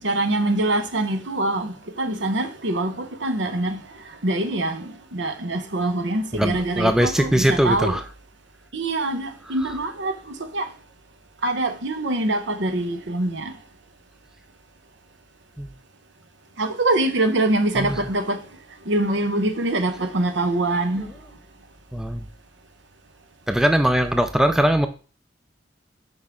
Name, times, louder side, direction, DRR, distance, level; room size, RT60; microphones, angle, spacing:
voice 1, 0.0-3.8 4.2-8.0 8.7-10.1 10.5-10.7 11.4-13.5 16.6-18.4 18.9-21.1, right 2 dB, 75° right, 0.9 m, -24 dB
voice 2, 6.3-8.0 15.6-15.7 17.8-18.0 21.9-22.3 23.5-24.9, equal, 5° right, 0.4 m, -20 dB
5.8 x 5.3 x 3.7 m
head